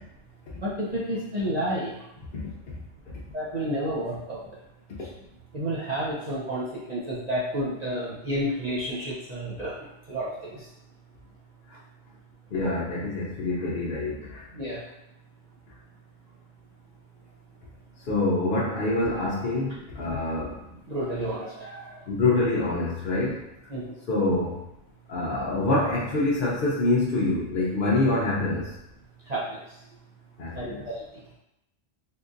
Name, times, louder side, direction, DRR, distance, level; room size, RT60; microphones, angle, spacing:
voice 1, 0.6-1.9 3.3-4.4 5.5-9.7 10.1-10.6 14.5-14.8 20.1-20.2 20.9-21.9 23.7-23.8 29.3-29.6 30.6-31.0, equal, 45° right, -8 dB, 0.6 m, -30 dB
voice 2, 12.5-14.4 18.0-20.6 22.1-23.4 24.1-24.6 25.1-28.7 30.4-30.8, left 2 dB, 55° left, -7 dB, 0.7 m, -26 dB
3.7 x 2.6 x 2.5 m, 0.87 s
omnidirectional pair, 1.3 m